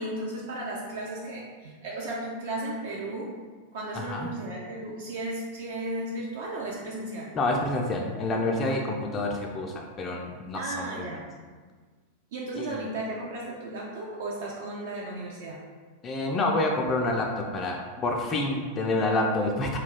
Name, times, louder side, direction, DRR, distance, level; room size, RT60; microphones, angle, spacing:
voice 1, 0.0-3.3 3.7-7.3 10.5-11.2 12.3-15.6, right 2 dB, 55° right, -3 dB, 0.3 m, -35 dB
voice 2, 3.9-4.3 7.3-11.0 12.6-12.9 16.0-19.8, left 2 dB, 25° left, 1 dB, 0.3 m, -28 dB
2.3 x 2.2 x 3.4 m, 1.5 s
figure-of-eight pair, 90°, 0 cm